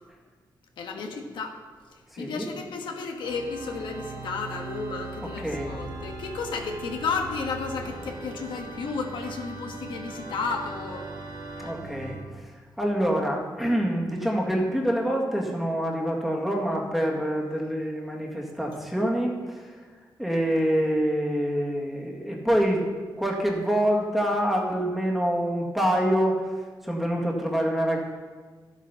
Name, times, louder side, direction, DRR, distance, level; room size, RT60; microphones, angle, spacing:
voice 1, 0.8-1.6 1.9-11.0 11.6-11.7, left 4 dB, 90° left, 3 dB, 1.4 m, -33 dB
voice 2, 2.1-2.5 5.2-5.8 11.6-12.5 12.8-19.8 20.2-22.8 23.2-26.5 26.8-28.0, equal, ahead, -1 dB, 1.9 m, -26 dB
Organ, 3.2-12.3, right 3 dB, 70° right, 2.2 m, -39 dB
12.5 x 8.1 x 5.7 m, 1.5 s
wide cardioid pair, 140°, 8 cm